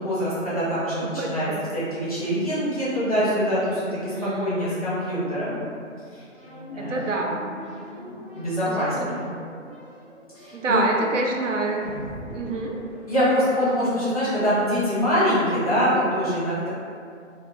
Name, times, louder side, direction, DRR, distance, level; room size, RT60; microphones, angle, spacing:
voice 1, 0.0-1.5 1.7-5.6 6.7-7.0 8.0-9.3 10.3-10.8 13.1-16.7, equal, 30° left, -10 dB, 0.6 m, -24 dB
voice 2, 1.0-1.7 4.1-4.7 6.8-7.4 8.7-9.1 10.5-11.8 12.3-12.8, right 2 dB, 75° right, 0 dB, 0.5 m, -27 dB
sound 1, 6.3-13.8, equal, 20° right, 0.6 m, -42 dB
2.2 x 2.0 x 3.0 m, 2.3 s
hypercardioid pair, 170°, 39 cm